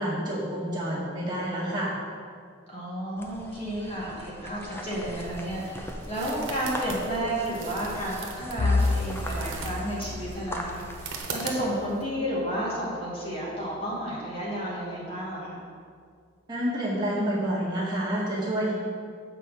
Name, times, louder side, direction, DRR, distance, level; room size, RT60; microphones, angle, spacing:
voice 1, 0.0-1.9 16.5-18.7, right 1 dB, 20° right, -8 dB, 2.0 m, -28 dB
voice 2, 2.7-15.6, right 1 dB, 30° left, -7 dB, 2.0 m, -32 dB
sound 1, 3.2-11.2, left 1 dB, 10° left, 0.6 m, -41 dB
sound 2, 4.8-12.0, right 4 dB, 90° right, 1.1 m, -40 dB
Bowed string instrument, 8.6-13.2, left 3 dB, 70° left, 0.7 m, -31 dB
7.5 x 4.4 x 6.4 m, 2.1 s
head